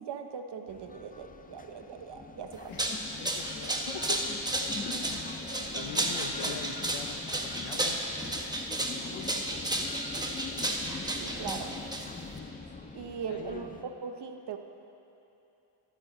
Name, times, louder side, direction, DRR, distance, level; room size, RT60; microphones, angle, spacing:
voice 1, 0.0-2.7 5.8-5.9 11.2-11.8 12.9-14.6, right 6 dB, 55° right, 6 dB, 1.0 m, -40 dB
sound 1, 0.7-13.8, left 4 dB, 15° left, 0.6 m, -43 dB
sound 2, 2.5-12.4, right 1 dB, 10° right, 1.2 m, -33 dB
voice 2, 3.2-4.2 4.8-5.2 5.7-7.3 7.6-8.0 8.2-8.4 8.7-9.8 12.9-13.7, left 6 dB, 70° left, 5 dB, 1.2 m, -43 dB
13.5 x 12.5 x 4.0 m, 2.9 s
cardioid pair, 85°, 50 cm